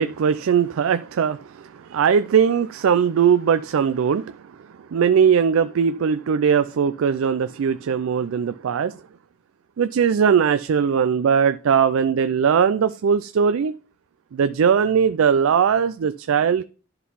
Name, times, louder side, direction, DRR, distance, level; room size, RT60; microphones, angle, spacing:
voice 1, 0.0-4.4 4.9-8.9 9.8-13.7 14.3-16.6, right 7 dB, 80° right, 0.4 m, -20 dB
11.0 x 3.9 x 5.5 m
head